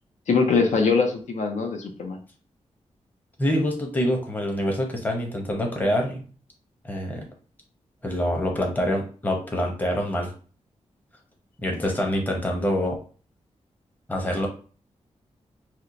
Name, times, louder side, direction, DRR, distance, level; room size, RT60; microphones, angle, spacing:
voice 1, 0.3-2.2, left 4 dB, 90° left, 4 dB, 0.6 m, -22 dB
voice 2, 3.4-6.2 6.8-7.2 8.0-10.3 11.6-13.0 14.1-14.5, equal, 15° left, 1 dB, 0.7 m, -25 dB
4.3 x 2.1 x 2.5 m, 0.39 s
wide cardioid pair, 160°, 12 cm